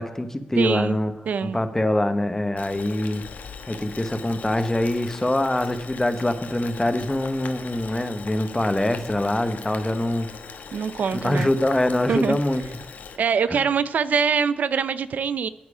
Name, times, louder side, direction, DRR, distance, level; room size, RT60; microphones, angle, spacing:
voice 1, 0.0-1.1 1.4-3.2 3.7-10.3 11.1-12.6 13.5-13.6, left 1 dB, 15° left, 10 dB, 0.9 m, -24 dB
voice 2, 0.6-1.0 1.3-1.6 10.7-11.5 12.1-12.4 13.2-15.5, right 6 dB, 70° right, 15 dB, 0.4 m, -23 dB
Boiling, 2.6-13.2, left 5 dB, 75° left, 1.1 m, -40 dB
9.7 x 9.0 x 4.9 m, 0.91 s
wide cardioid pair, 110°, 3 cm